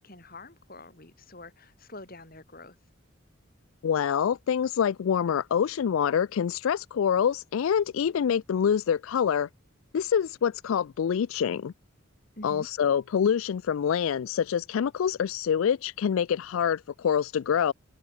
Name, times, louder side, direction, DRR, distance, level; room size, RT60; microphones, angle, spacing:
voice 1, 0.0-2.8 12.4-12.7, left 2 dB, 45° left, 5.8 m, -46 dB
voice 2, 3.8-9.5 9.9-11.7 12.4-17.7, left 8 dB, 75° left, 0.3 m, -26 dB
open air
head